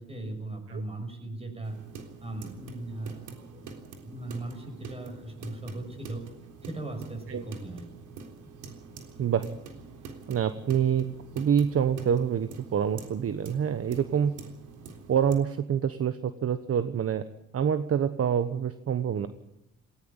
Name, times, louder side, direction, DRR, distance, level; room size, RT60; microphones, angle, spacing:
voice 1, 0.0-1.8 2.2-3.7 4.0-6.2 6.6-7.9, right 2 dB, 20° right, 5 dB, 6.4 m, -38 dB
sound 1, 1.6-15.3, right 4 dB, 85° right, 3.7 m, -46 dB
voice 2, 10.3-14.3 15.1-17.2 17.5-19.3, right 8 dB, 50° right, 11 dB, 1.2 m, -26 dB
18.5 x 17.5 x 8.8 m, 0.87 s
cardioid pair, 90°, 30 cm